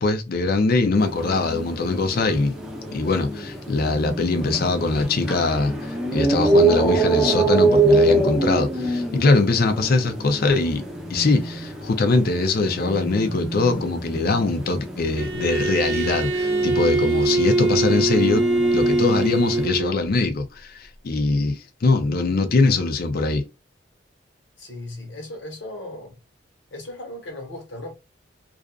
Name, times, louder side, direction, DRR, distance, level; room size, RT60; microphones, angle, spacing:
voice 1, 0.0-2.6 2.9-18.4 18.7-23.5, left 3 dB, 55° left, 0.5 m, -22 dB
sound 1, 1.0-19.7, right 2 dB, 5° right, 0.6 m, -25 dB
Bowed string instrument, 15.2-20.0, right 2 dB, 90° right, 0.6 m, -22 dB
voice 2, 24.6-26.2 26.7-27.9, left 1 dB, 75° left, 1.3 m, -36 dB
2.4 x 2.3 x 2.3 m
head